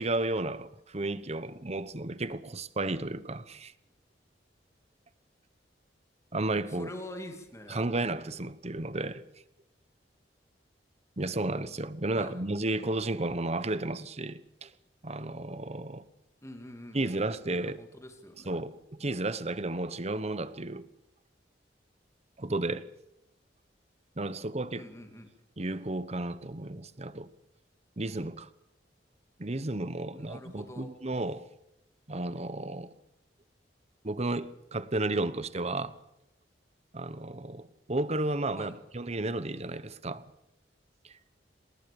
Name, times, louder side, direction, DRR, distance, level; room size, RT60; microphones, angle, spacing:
voice 1, 0.0-3.7 6.3-6.9 7.7-9.2 11.2-14.7 15.0-16.0 16.9-17.8 18.4-20.9 22.4-22.8 24.2-24.9 25.6-27.3 28.0-28.5 29.4-31.5 32.1-32.9 34.0-36.0 36.9-40.2 41.0-41.1, right 2 dB, 35° right, 1.1 m, -33 dB
voice 2, 6.7-7.9 12.2-12.4 16.4-18.5 24.7-25.3 30.1-30.9 38.5-38.7, left 1 dB, 15° left, 2.8 m, -45 dB
27.5 x 19.5 x 7.0 m
head